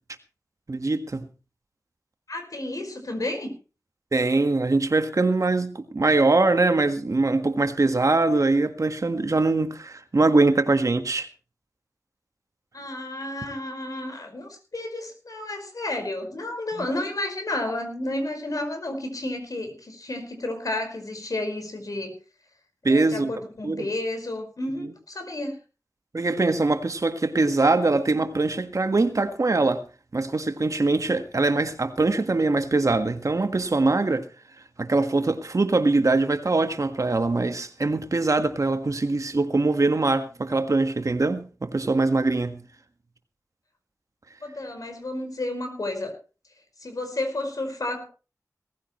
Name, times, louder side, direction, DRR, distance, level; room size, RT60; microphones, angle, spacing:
voice 1, 0.7-1.3 4.1-11.3 16.8-16.9 22.8-23.3 23.6-23.9 24.8-24.9 26.1-29.8 30.1-34.3 34.8-42.6, right 3 dB, 55° right, 1.7 m, -22 dB
voice 2, 2.3-3.5 12.7-22.1 22.9-25.6 44.4-46.1 46.8-48.1, left 1 dB, 65° left, 5.2 m, -31 dB
18.5 x 15.0 x 3.2 m
wide cardioid pair, 70°, 6 cm